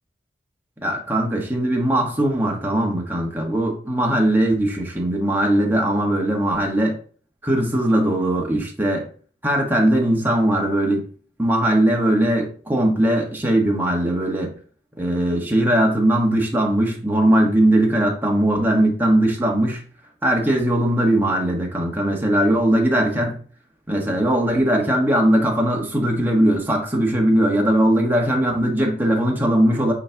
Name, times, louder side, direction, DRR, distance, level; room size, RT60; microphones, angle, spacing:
voice 1, 0.8-6.9 7.4-9.1 9.4-11.1 11.4-14.6 15.0-19.8 20.2-23.4 23.9-29.9, right 1 dB, 10° right, -1 dB, 1.4 m, -19 dB
8.5 x 3.3 x 3.5 m, 0.43 s
head